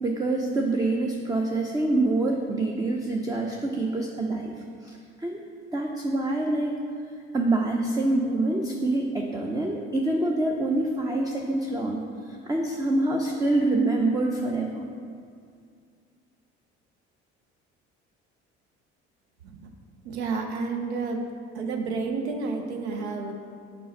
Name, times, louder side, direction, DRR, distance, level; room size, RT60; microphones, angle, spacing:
voice 1, 0.0-4.5 4.8-5.4 5.7-6.8 7.3-14.9, right 2 dB, 10° right, 1 dB, 0.5 m, -26 dB
voice 2, 20.0-21.2 21.5-23.3, right 4 dB, 75° right, 3 dB, 0.7 m, -30 dB
5.4 x 4.3 x 5.2 m, 2.2 s
figure-of-eight pair, 55°, 34 cm